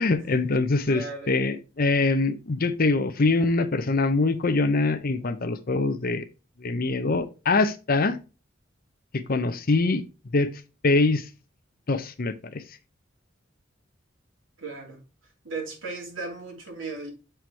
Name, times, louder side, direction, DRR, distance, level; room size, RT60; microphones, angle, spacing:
voice 1, 0.0-6.2 6.6-8.2 9.1-10.0 10.3-10.5 10.8-11.3 11.9-12.6, left 3 dB, 50° left, 0.7 m, -24 dB
voice 2, 0.9-1.3 14.6-15.0 15.4-17.1, right 3 dB, 85° right, 3.1 m, -36 dB
7.6 x 4.6 x 3.4 m
head